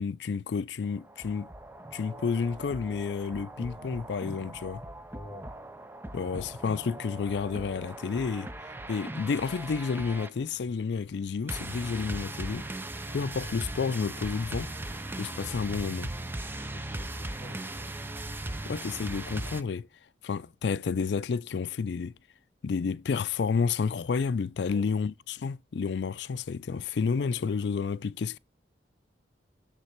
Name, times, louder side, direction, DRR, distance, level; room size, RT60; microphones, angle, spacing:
voice 1, 0.0-1.5 1.9-4.8 6.1-8.5 8.9-12.7 13.1-14.7 15.2-16.1 18.7-19.9 20.2-22.1 22.6-28.4, left 5 dB, 70° left, 0.4 m, -30 dB
sound 1, 0.8-19.6, right 1 dB, 10° right, 0.4 m, -39 dB
voice 2, 5.1-5.5 16.6-17.9 24.7-24.9, left 1 dB, 15° left, 1.6 m, -47 dB
9.6 x 3.5 x 4.4 m
head